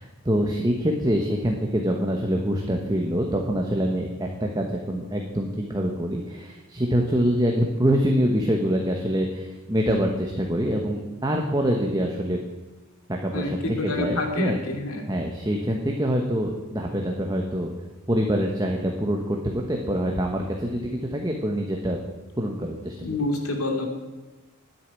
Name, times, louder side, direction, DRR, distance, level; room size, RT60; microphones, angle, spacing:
voice 1, 0.0-12.4 13.2-14.6 15.1-17.7 18.1-22.0 22.4-23.0, equal, 20° right, 1 dB, 1.1 m, -25 dB
voice 2, 13.3-15.1 23.0-23.9, left 2 dB, 80° left, 3 dB, 2.5 m, -28 dB
10.0 x 8.6 x 9.7 m, 1.2 s
head